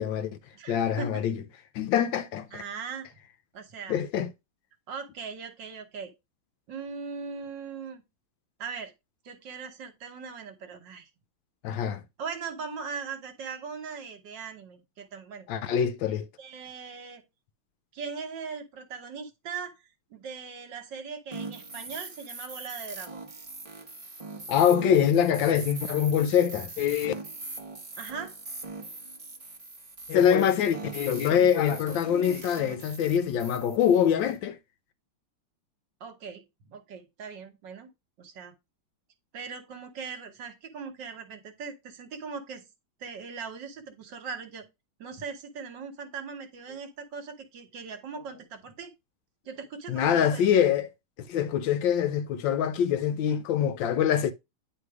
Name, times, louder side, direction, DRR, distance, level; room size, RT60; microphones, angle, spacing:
voice 1, 0.0-0.4 0.7-1.4 1.7-2.6 3.9-4.3 11.6-12.0 15.5-16.2 24.5-27.1 30.1-34.6 49.9-50.9 51.3-54.3, left 9 dB, 75° left, 1.2 m, -24 dB
voice 2, 0.5-1.1 2.5-3.1 3.5-4.0 4.9-6.1 6.7-8.0 8.6-8.9 9.2-11.1 12.2-15.5 16.0-17.2 17.9-19.8 20.1-23.3 28.0-28.3 36.0-36.4 36.7-37.9 38.2-38.5 39.3-42.6 43.0-44.6 45.0-48.9 49.4-50.4, right 5 dB, 65° right, 1.6 m, -39 dB
sound 1, 21.3-34.4, right 3 dB, 30° right, 0.6 m, -41 dB
9.7 x 3.3 x 4.8 m
omnidirectional pair, 2.2 m